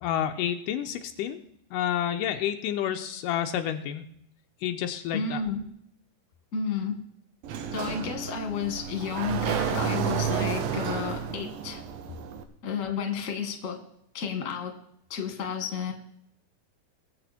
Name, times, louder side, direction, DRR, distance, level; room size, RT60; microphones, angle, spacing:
voice 1, 0.0-1.4 1.7-4.1 4.6-5.4, left 10 dB, 80° left, 6 dB, 2.3 m, -29 dB
voice 2, 5.1-5.6 6.5-7.0 7.7-11.8 12.6-13.8 14.1-14.8 15.1-15.9, left 6 dB, 30° left, 4 dB, 1.6 m, -31 dB
Sliding door, 7.4-12.4, right 8 dB, 90° right, 2.7 m, -31 dB
21.5 x 7.7 x 4.3 m, 0.70 s
omnidirectional pair, 4.0 m